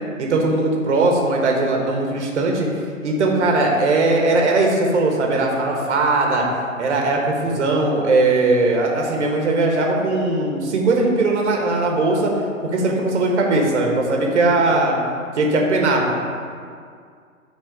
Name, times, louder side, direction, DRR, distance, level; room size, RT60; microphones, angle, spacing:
voice 1, 0.2-2.7 3.0-6.5 6.8-12.3 12.6-14.9 15.4-16.1, right 2 dB, 55° right, 0 dB, 1.5 m, -19 dB
9.0 x 4.1 x 4.8 m, 2.2 s
figure-of-eight pair, 130°, 42 cm